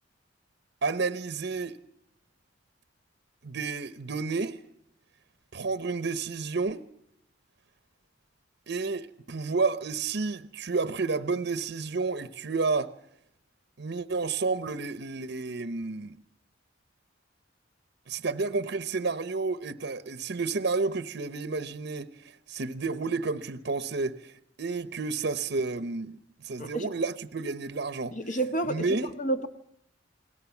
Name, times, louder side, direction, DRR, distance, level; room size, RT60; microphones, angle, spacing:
voice 1, 0.8-1.8 3.4-4.6 5.5-6.8 8.7-12.9 13.8-16.2 18.1-24.3 24.6-26.2 26.4-28.2 28.7-29.1, right 4 dB, 65° right, 0.9 m, -31 dB
voice 2, 28.1-28.9 29.2-29.5, right 2 dB, 45° left, 1.8 m, -29 dB
29.0 x 20.5 x 7.2 m
head